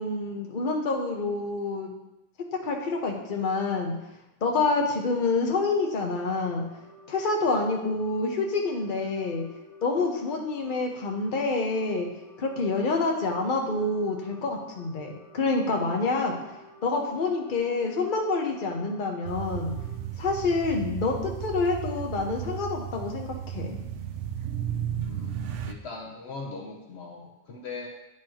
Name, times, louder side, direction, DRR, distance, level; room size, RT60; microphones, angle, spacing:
voice 1, 0.0-1.9 2.6-3.9 4.4-6.6 7.1-9.4 9.8-12.1 12.4-16.3 16.8-19.7 20.2-23.8, left 3 dB, 45° left, 1 dB, 1.0 m, -27 dB
sound 1, 5.8-20.0, left 2 dB, 60° right, 1.9 m, -52 dB
sound 2, 19.3-25.7, right 9 dB, 85° right, 0.9 m, -34 dB
voice 2, 25.0-27.9, left 4 dB, 65° left, 0 dB, 1.1 m, -40 dB
10.0 x 4.7 x 2.9 m, 0.94 s
omnidirectional pair, 1.2 m